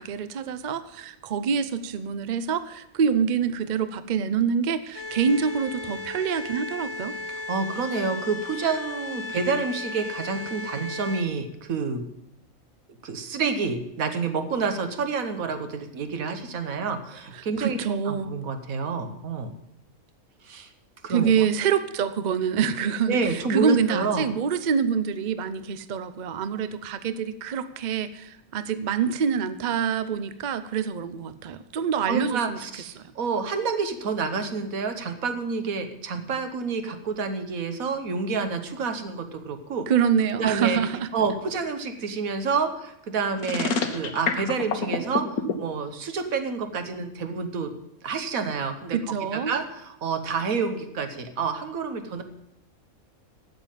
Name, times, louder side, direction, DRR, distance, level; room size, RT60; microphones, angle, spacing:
voice 1, 0.0-7.1 17.3-18.3 21.1-32.6 33.0-33.1 39.9-41.1 48.9-49.5, right 7 dB, 50° right, 12 dB, 0.5 m, -26 dB
sound 1, 4.9-11.2, left 3 dB, 70° left, 1.9 m, -35 dB
voice 2, 7.5-12.0 13.0-17.8 18.1-19.5 20.4-20.7 21.0-21.5 23.1-24.3 32.1-39.9 40.4-40.8 41.1-47.7 48.0-52.2, right 5 dB, 70° right, 8 dB, 1.5 m, -28 dB
sound 2, 43.4-45.5, left 5 dB, 85° left, 1.6 m, -26 dB
8.9 x 7.5 x 9.0 m, 0.82 s
omnidirectional pair, 1.5 m